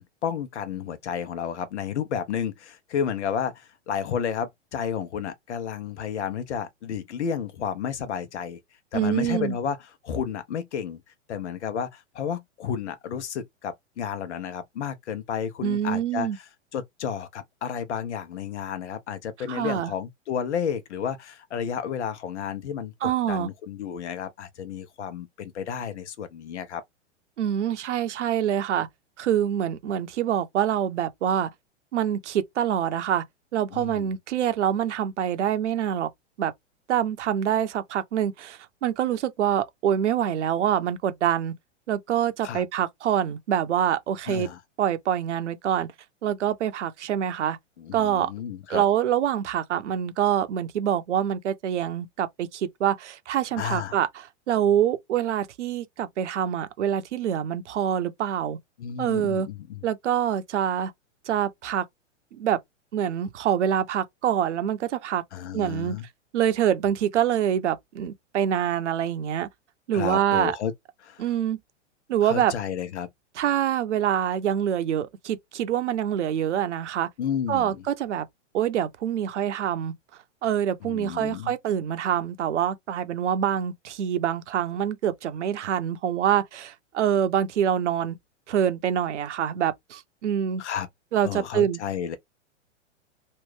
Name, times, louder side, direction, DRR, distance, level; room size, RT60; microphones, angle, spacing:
voice 1, 0.0-8.6 8.9-9.8 10.0-11.0 11.3-16.4 16.7-26.8 33.7-34.1 42.4-42.6 44.3-44.6 47.8-48.8 53.6-54.0 58.8-59.8 65.3-66.0 69.9-70.7 71.0-71.2 72.2-73.1 77.2-77.8 80.8-81.5 90.6-90.9 91.2-92.2, left 8 dB, 65° left, 1.0 m, -31 dB
voice 2, 8.9-9.6 15.6-16.4 19.5-19.9 23.0-23.5 27.4-28.9 29.2-31.5 31.9-33.2 33.5-36.1 36.4-36.5 36.9-41.5 41.9-44.5 44.8-45.9 46.2-47.6 47.9-48.3 48.7-58.6 59.0-59.5 59.8-60.9 61.3-61.8 62.3-62.6 62.9-65.2 65.5-65.9 66.3-69.5 69.9-70.6 71.2-71.6 72.1-72.5 73.4-77.1 77.5-78.2 78.5-79.9 80.4-88.2 88.5-90.6 91.1-91.8, right 10 dB, 70° right, 0.8 m, -25 dB
3.2 x 2.5 x 3.3 m
hypercardioid pair, 110°, 37 cm